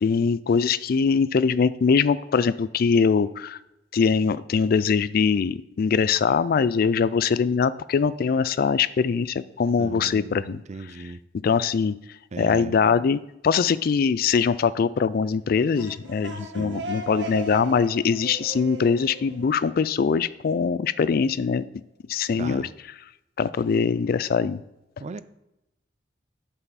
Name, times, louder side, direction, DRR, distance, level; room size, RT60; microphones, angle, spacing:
voice 1, 0.0-3.6 3.9-10.6 10.9-11.0 11.4-12.0 12.4-21.6 22.1-22.7 23.4-24.6, left 5 dB, 55° left, 17 dB, 0.3 m, -22 dB
voice 2, 9.8-11.2 12.3-12.7 16.4-16.8 22.4-22.7 25.0-25.2, right 3 dB, 40° right, 14 dB, 0.4 m, -37 dB
sound 1, 15.5-20.3, right 3 dB, 75° right, 1.4 m, -38 dB
11.0 x 5.6 x 4.1 m, 0.90 s
head